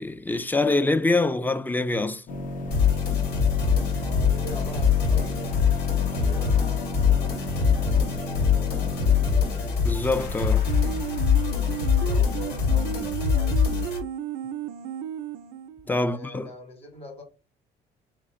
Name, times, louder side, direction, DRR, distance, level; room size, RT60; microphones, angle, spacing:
voice 1, 0.0-2.2 9.8-10.7 15.9-16.5, left 2 dB, 10° left, 0.4 m, -25 dB
sound 1, 2.3-13.1, left 2 dB, 50° left, 0.9 m, -35 dB
sound 2, 2.7-14.0, left 7 dB, 80° left, 2.5 m, -23 dB
voice 2, 4.0-9.3 11.3-13.8 16.0-17.2, left 1 dB, 35° left, 2.1 m, -43 dB
sound 3, 10.7-15.9, right 10 dB, 85° right, 0.5 m, -34 dB
3.8 x 3.3 x 3.6 m
cardioid pair, 110°, 17 cm